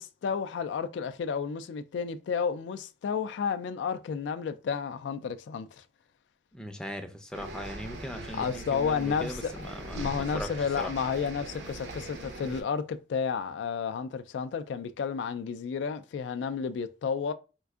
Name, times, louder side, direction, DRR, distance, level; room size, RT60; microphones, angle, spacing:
voice 1, 0.0-5.8 8.3-17.3, left 6 dB, 80° left, 0.3 m, -32 dB
voice 2, 6.5-10.5 10.8-10.9, equal, 5° left, 0.4 m, -39 dB
sound 1, 7.3-12.6, right 2 dB, 80° right, 0.7 m, -41 dB
4.4 x 2.4 x 2.3 m
head